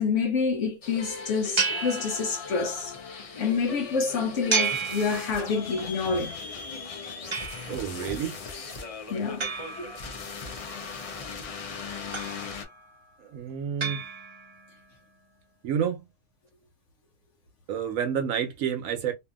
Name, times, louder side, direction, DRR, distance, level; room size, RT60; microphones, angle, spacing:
voice 1, 0.0-2.9 3.4-6.3 8.0-8.1 9.1-9.5 9.8-9.9, left 5 dB, 70° left, 0.9 m, -27 dB
sound 1, 0.8-12.6, left 5 dB, 50° left, 0.4 m, -39 dB
sound 2, 1.6-2.8 4.5-5.8 7.3-8.0 9.4-10.5 12.1-12.8 13.8-14.7, right 5 dB, 45° right, 0.3 m, -32 dB
voice 2, 7.7-8.4 13.2-14.0 15.6-16.1 17.7-19.1, right 8 dB, 85° right, 1.1 m, -29 dB
2.6 x 2.5 x 2.3 m
omnidirectional pair, 1.4 m